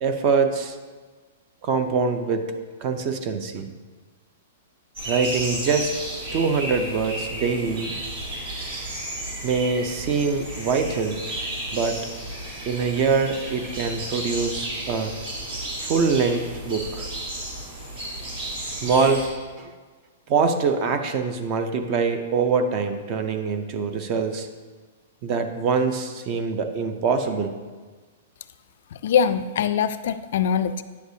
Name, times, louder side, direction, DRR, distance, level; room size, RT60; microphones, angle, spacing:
voice 1, 0.0-0.8 1.6-2.5 2.8-3.7 5.1-6.0 6.3-7.9 9.4-11.3 11.7-12.0 12.7-15.2 15.8-17.1 18.6-19.3 19.6-19.7 20.3-24.5 25.2-27.6, right 5 dB, 30° right, 8 dB, 0.5 m, -24 dB
sound 1, 4.9-19.3, right 1 dB, 50° right, 2.4 m, -33 dB
voice 2, 28.9-30.8, left 7 dB, 60° left, 12 dB, 0.3 m, -22 dB
9.4 x 6.5 x 2.7 m, 1.4 s
hypercardioid pair, 165°, 0 cm